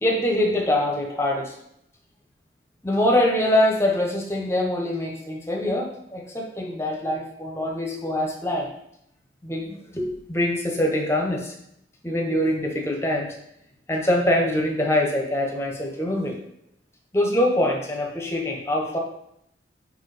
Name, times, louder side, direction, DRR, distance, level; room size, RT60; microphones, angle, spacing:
voice 1, 0.0-1.5 2.8-8.7 9.4-11.5 12.0-13.3 13.9-16.4 17.1-19.0, left 1 dB, 15° left, 1 dB, 1.1 m, -24 dB
5.0 x 4.6 x 4.9 m, 0.77 s
head